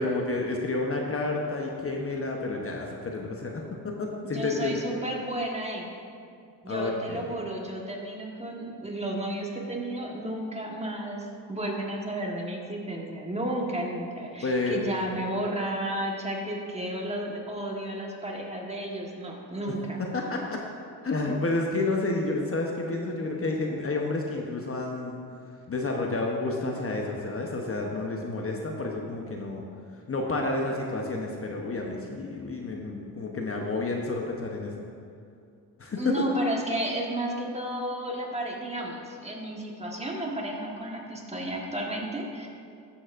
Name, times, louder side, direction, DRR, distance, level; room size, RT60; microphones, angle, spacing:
voice 1, 0.0-4.8 6.7-7.3 14.4-14.8 20.0-20.6 21.0-25.2 25.7-29.6 30.1-34.9 35.8-36.2, left 2 dB, 30° left, 0 dB, 0.9 m, -30 dB
voice 2, 4.3-5.9 6.6-20.0 36.0-42.5, right 1 dB, 15° right, -1 dB, 1.4 m, -32 dB
13.5 x 7.1 x 2.6 m, 2.4 s
cardioid pair, 75°, 42 cm